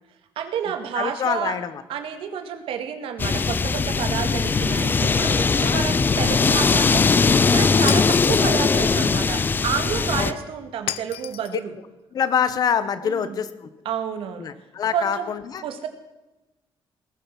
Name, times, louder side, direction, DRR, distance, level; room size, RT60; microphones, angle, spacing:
voice 1, 0.4-1.6 1.9-7.0 7.3-11.7 13.0-13.4 13.9-14.5 14.9-15.3 15.6-15.9, right 8 dB, 75° right, 8 dB, 2.1 m, -30 dB
voice 2, 0.9-1.8 5.4-5.9 10.2-10.4 12.1-13.7 14.4-15.6, left 7 dB, 45° left, 13 dB, 1.0 m, -26 dB
sound 1, 3.2-10.3, left 4 dB, 20° left, 0.5 m, -20 dB
Shatter, 7.9-8.6 10.9-11.6, left 13 dB, 85° left, 0.6 m, -32 dB
20.0 x 11.5 x 6.1 m, 1.0 s
cardioid pair, 180°, 9 cm